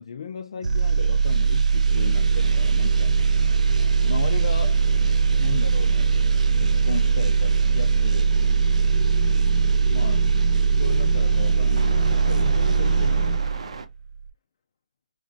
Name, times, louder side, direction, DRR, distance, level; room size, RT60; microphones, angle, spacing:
voice 1, 0.0-3.6 4.0-4.8 5.4-6.1 6.6-8.3 9.9-10.3 10.7-13.4, left 6 dB, 50° left, 0.3 m, -35 dB
sound 1, 0.6-13.8 14.1-14.3, right 5 dB, 75° right, 0.4 m, -20 dB
sound 2, 1.9-13.4, left 4 dB, 25° left, 0.7 m, -36 dB
sound 3, 3.3-13.9, right 3 dB, 55° right, 0.7 m, -43 dB
3.7 x 3.0 x 2.5 m
hypercardioid pair, 165°, 4 cm